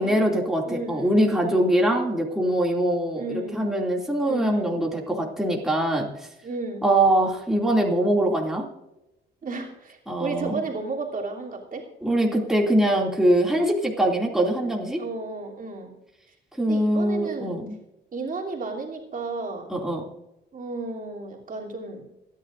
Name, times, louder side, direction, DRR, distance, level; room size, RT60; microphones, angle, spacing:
voice 1, 0.0-6.3 6.8-8.7 10.1-10.6 12.0-15.0 16.6-17.8 19.7-20.1, right 1 dB, ahead, -2 dB, 2.5 m, -23 dB
voice 2, 0.7-1.7 3.2-3.7 4.2-4.8 6.4-6.9 9.4-11.9 15.0-15.9 16.7-17.6 18.1-19.8 20.5-22.1, right 3 dB, 45° right, -1 dB, 3.1 m, -33 dB
27.0 x 10.5 x 2.6 m, 0.93 s
cardioid pair, 90°, 20 cm